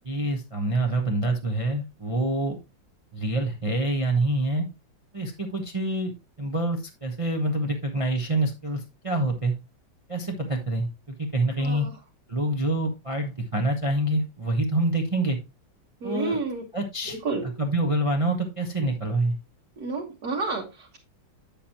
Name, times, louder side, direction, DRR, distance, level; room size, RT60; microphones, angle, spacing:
voice 1, 0.0-2.6 3.1-4.7 5.1-6.1 6.4-9.5 10.1-11.9 12.3-15.4 16.0-16.4 16.7-19.3, right 1 dB, 25° right, 2 dB, 0.7 m, -26 dB
voice 2, 11.6-11.9 16.0-16.6 17.1-17.5 19.8-21.0, right 3 dB, 55° right, -2 dB, 1.8 m, -30 dB
8.6 x 7.1 x 2.9 m, 0.25 s
omnidirectional pair, 2.1 m